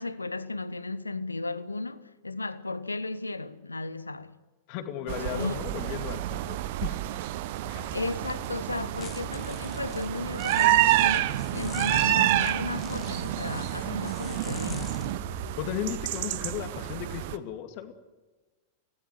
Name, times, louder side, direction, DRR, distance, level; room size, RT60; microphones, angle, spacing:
voice 1, 0.0-4.3 5.3-5.6 7.9-15.0, left 3 dB, 80° left, 1.1 m, -34 dB
voice 2, 4.7-7.0 7.7-7.9 15.6-17.9, left 10 dB, 45° left, 2.5 m, -35 dB
sound 1, 5.1-17.4, right 15 dB, 50° right, 1.0 m, -28 dB
sound 2, 7.7-16.2, left 6 dB, 25° left, 1.9 m, -44 dB
26.0 x 18.0 x 7.8 m
figure-of-eight pair, 90°, 0 cm